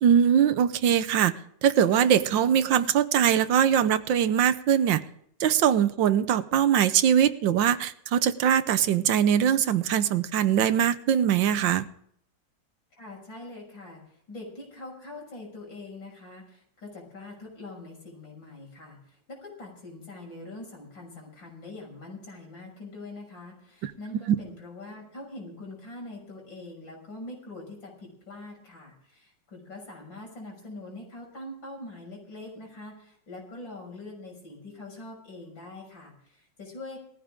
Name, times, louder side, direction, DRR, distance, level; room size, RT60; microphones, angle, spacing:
voice 1, 0.0-1.3 1.6-5.0 5.4-11.9 23.8-23.9 24.3-24.4, right 9 dB, 85° right, 13 dB, 1.5 m, -22 dB
voice 2, 13.0-37.0, left 2 dB, 90° left, -1 dB, 7.0 m, -43 dB
19.0 x 14.5 x 3.7 m, 0.68 s
omnidirectional pair, 2.0 m